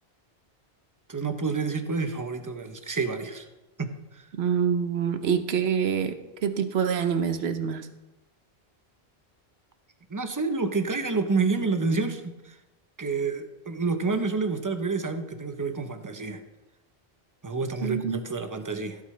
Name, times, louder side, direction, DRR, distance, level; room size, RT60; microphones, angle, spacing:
voice 1, 1.1-3.5 3.8-4.2 10.1-12.5 13.0-16.4 17.4-19.0, right 4 dB, 20° right, 7 dB, 0.8 m, -29 dB
voice 2, 4.3-7.9 17.8-18.2, right 7 dB, 80° right, 9 dB, 1.1 m, -26 dB
16.0 x 8.5 x 3.2 m, 1.0 s
omnidirectional pair, 1.1 m